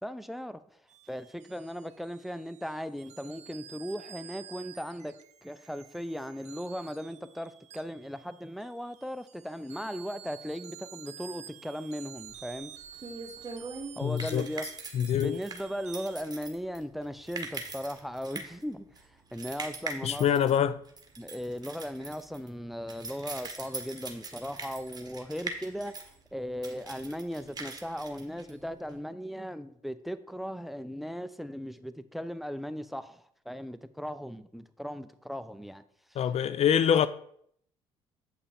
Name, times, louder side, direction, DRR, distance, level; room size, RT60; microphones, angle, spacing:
voice 1, 0.0-5.1 5.4-12.7 14.0-14.7 15.2-20.3 21.2-35.8 36.1-36.2, equal, ahead, 0.6 m, -38 dB
sound 1, 0.9-16.2, right 10 dB, 55° right, 0.8 m, -50 dB
sound 2, 12.2-29.0, right 3 dB, 30° right, 1.6 m, -42 dB
voice 2, 14.0-14.5 14.9-15.4 20.0-20.8 36.2-37.1, left 9 dB, 50° left, 0.4 m, -25 dB
8.3 x 5.6 x 4.2 m
hypercardioid pair, 60°, 14 cm